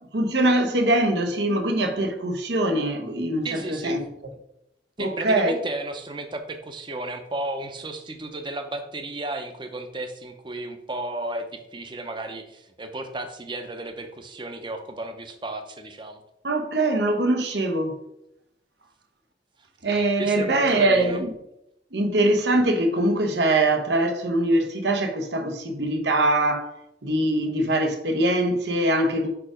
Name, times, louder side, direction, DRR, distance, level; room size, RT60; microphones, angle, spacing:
voice 1, 0.1-4.0 5.0-5.5 16.4-18.0 19.8-21.3 21.9-26.7 27.0-29.3, right 1 dB, 80° right, 0.9 m, -22 dB
voice 2, 3.4-4.0 5.0-16.2 20.2-21.2, right 2 dB, 25° right, 0.7 m, -33 dB
4.9 x 4.8 x 5.0 m
head